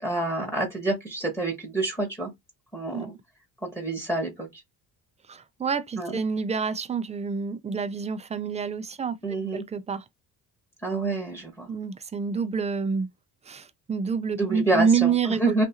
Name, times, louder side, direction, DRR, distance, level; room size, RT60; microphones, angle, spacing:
voice 1, 0.0-2.3 2.7-3.1 3.7-4.6 6.0-6.2 9.2-9.6 10.8-11.7 14.4-15.6, right 2 dB, 5° left, 1.1 m, -28 dB
voice 2, 5.3-10.0 11.7-13.1 13.5-15.5, right 6 dB, 20° right, 0.3 m, -28 dB
2.5 x 2.5 x 2.8 m
cardioid pair, 95°, 37 cm